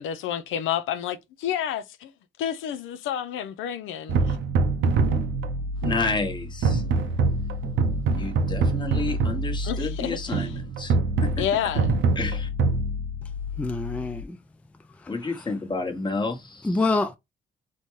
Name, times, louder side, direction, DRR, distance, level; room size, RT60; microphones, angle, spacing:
voice 1, 0.0-2.1 2.4-4.4 9.6-10.5 11.4-12.0, left 10 dB, 85° left, 0.5 m, -30 dB
sound 1, 4.1-14.2, right 3 dB, 75° right, 0.7 m, -25 dB
voice 2, 5.8-6.8 8.1-10.9 11.4-11.5 12.2-12.5 15.1-16.8, left 3 dB, 20° left, 1.0 m, -30 dB
voice 3, 13.6-14.4 16.6-17.2, left 3 dB, 5° left, 0.3 m, -25 dB
4.1 x 2.2 x 3.1 m
cardioid pair, 90°, 20 cm